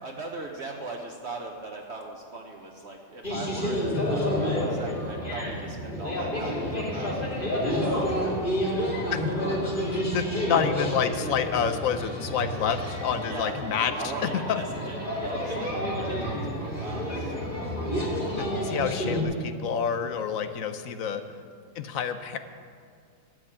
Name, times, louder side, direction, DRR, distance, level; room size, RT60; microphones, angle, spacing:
voice 1, 0.0-8.8 10.5-10.6 13.2-13.6 13.9-17.4 18.6-18.7, right 2 dB, 55° right, 1 dB, 1.2 m, -40 dB
sound 1, 3.2-19.2, equal, 35° left, 2.8 m, -29 dB
voice 2, 9.9-13.9 14.5-14.6 18.4-21.4 21.8-22.4, left 7 dB, 75° left, 9 dB, 1.1 m, -28 dB
12.5 x 7.8 x 8.7 m, 2.2 s
omnidirectional pair, 1.4 m